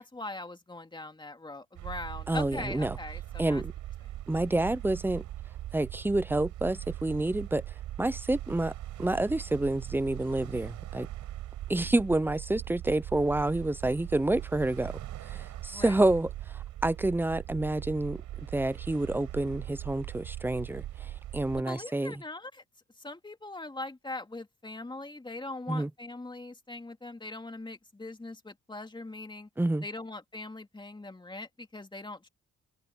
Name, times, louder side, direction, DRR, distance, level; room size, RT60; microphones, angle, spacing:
voice 1, 0.0-3.6 15.7-16.0 21.6-22.6 23.0-29.5 29.8-32.3, left 2 dB, 15° left, 2.5 m, -41 dB
sound 1, 1.8-21.6, right 13 dB, 85° right, 6.5 m, -40 dB
voice 2, 2.3-3.0 3.4-3.7 4.3-5.2 5.7-7.6 8.0-8.7 9.0-11.1 11.7-14.9 15.2-18.2 18.5-22.2 25.7-25.9 29.6-29.9, right 2 dB, 5° right, 0.7 m, -28 dB
open air
cardioid pair, 90°, 30 cm